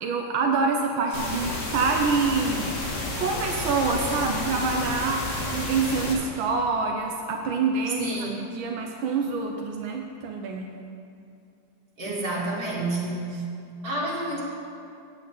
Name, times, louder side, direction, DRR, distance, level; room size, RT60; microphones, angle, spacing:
voice 1, 0.0-2.7 3.2-8.1 8.4-10.7 12.1-12.2 12.7-12.8, right 4 dB, 85° right, 2 dB, 1.6 m, -26 dB
sound 1, 1.1-6.1, left 2 dB, 40° left, 1.8 m, -31 dB
voice 2, 8.0-8.4 12.0-13.4 13.8-14.4, right 1 dB, 50° right, -5 dB, 2.6 m, -29 dB
8.6 x 7.5 x 8.2 m, 2.5 s
omnidirectional pair, 2.1 m